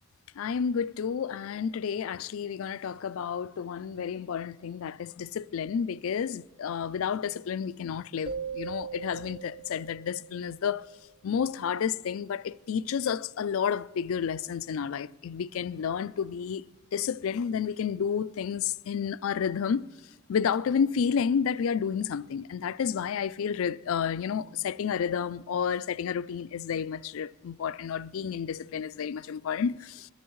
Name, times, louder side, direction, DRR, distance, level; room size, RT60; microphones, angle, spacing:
voice 1, 0.4-10.8 11.2-16.6 16.9-19.9 20.3-30.1, left 7 dB, 65° left, 0.4 m, -30 dB
sound 1, 8.3-10.9, right 6 dB, 25° right, 0.6 m, -40 dB
22.5 x 13.5 x 3.1 m
head